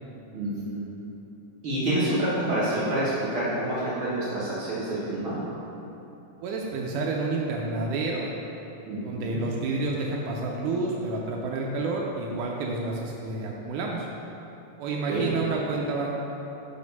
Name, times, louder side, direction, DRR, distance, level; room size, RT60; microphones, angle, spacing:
voice 1, 0.3-0.9 1.6-3.0 3.3-5.3 8.9-9.4 15.1-15.3, right 1 dB, 65° right, -10 dB, 1.3 m, -28 dB
voice 2, 6.4-8.3 9.0-14.1 14.8-16.1, right 3 dB, 80° right, -1 dB, 1.8 m, -29 dB
5.0 x 4.8 x 5.3 m, 3.0 s
omnidirectional pair, 4.0 m